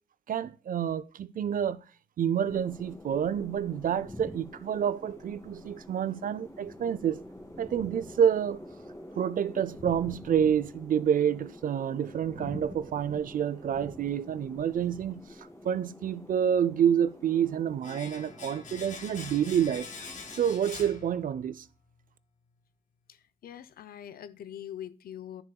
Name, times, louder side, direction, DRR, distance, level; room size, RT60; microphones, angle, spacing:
voice 1, 0.3-1.8 2.2-7.2 7.6-8.6 9.2-15.2 15.6-19.9 20.3-21.7, right 9 dB, 65° right, 0.5 m, -28 dB
sound 1, 2.5-20.7, left 1 dB, 20° left, 1.9 m, -47 dB
Domestic sounds home sounds, 17.8-21.7 21.9-22.1, left 5 dB, 55° left, 1.6 m, -45 dB
voice 2, 23.1-25.4, left 10 dB, 75° left, 0.6 m, -43 dB
9.7 x 7.0 x 2.3 m
cardioid pair, 60°, 15 cm